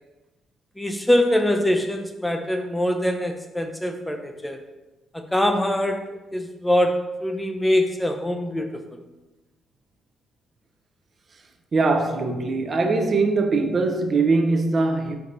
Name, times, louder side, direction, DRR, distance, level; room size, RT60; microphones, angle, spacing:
voice 1, 0.8-4.6 5.1-8.7, left 1 dB, 10° left, 0.4 m, -23 dB
voice 2, 11.7-15.2, right 3 dB, 40° right, 0.5 m, -21 dB
4.6 x 4.1 x 2.6 m
cardioid pair, 90°, 0 cm